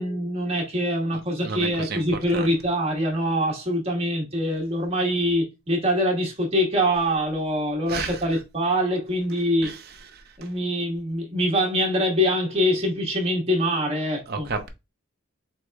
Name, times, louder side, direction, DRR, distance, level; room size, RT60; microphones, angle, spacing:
voice 1, 0.0-9.8 10.4-14.5, equal, 30° right, 1.4 m, -24 dB
voice 2, 1.4-2.0 2.3-2.5 7.9-8.2 9.6-9.8 10.1-10.2 14.3-14.7, right 4 dB, 45° right, 0.7 m, -31 dB
4.6 x 3.6 x 2.3 m
head